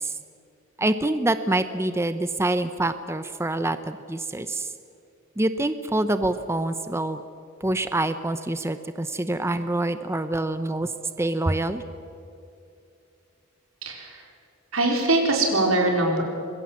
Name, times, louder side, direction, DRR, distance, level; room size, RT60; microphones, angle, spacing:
voice 1, 0.8-4.7 5.4-7.2 7.6-10.9 11.2-11.8, right 1 dB, 15° right, 11 dB, 0.7 m, -26 dB
voice 2, 13.8-14.2 14.7-16.2, right 2 dB, 85° right, 2 dB, 4.6 m, -22 dB
25.5 x 22.0 x 7.5 m, 2.6 s
head